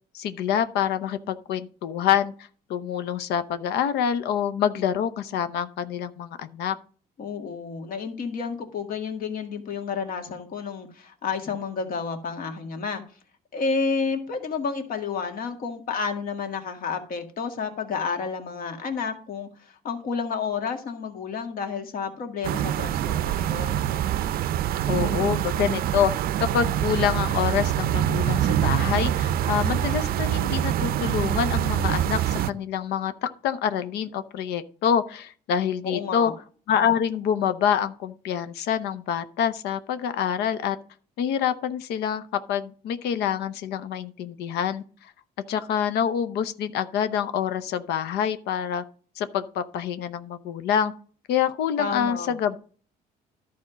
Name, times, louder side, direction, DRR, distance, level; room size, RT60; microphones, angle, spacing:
voice 1, 0.1-2.3 2.7-6.8 24.9-26.1 26.4-36.3 36.7-40.8 41.2-42.2 42.5-45.1 45.5-48.8 49.2-50.9 51.3-52.6, left 8 dB, 80° left, 11 dB, 0.7 m, -26 dB
voice 2, 7.2-13.0 13.5-23.9 35.8-36.3 51.8-52.3, left 5 dB, 55° left, 5 dB, 1.9 m, -30 dB
sound 1, 22.4-32.5, right 11 dB, 60° right, 0.5 m, -25 dB
11.5 x 4.3 x 6.1 m, 0.42 s
cardioid pair, 110°, 17 cm